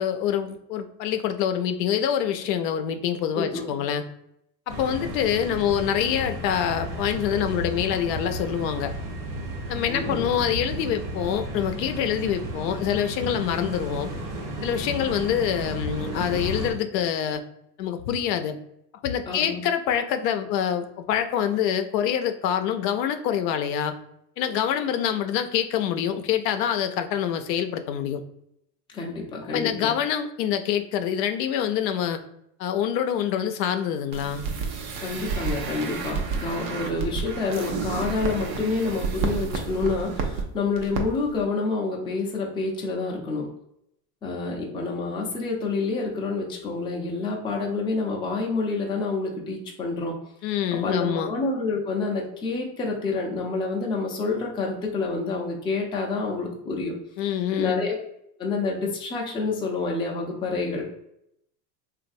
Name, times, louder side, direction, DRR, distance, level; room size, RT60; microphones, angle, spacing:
voice 1, 0.0-4.0 4.7-8.9 9.7-14.1 14.6-17.4 17.8-18.6 19.0-24.0 24.4-28.2 29.5-32.2 32.6-34.4 50.4-51.3 57.2-57.9, left 9 dB, 85° left, 7 dB, 0.6 m, -26 dB
voice 2, 3.3-3.7 9.9-10.3 19.3-19.6 28.9-29.9 35.0-43.5 44.2-56.9 57.6-57.9 58.4-60.8, left 3 dB, 10° left, -1 dB, 0.4 m, -28 dB
sound 1, 4.7-16.7, right 1 dB, 65° right, 1.1 m, -33 dB
sound 2, 34.1-40.4 40.8-41.0 41.3-41.4, right 5 dB, 85° right, 0.7 m, -30 dB
3.1 x 2.5 x 2.6 m, 0.76 s
supercardioid pair, 115°, 48 cm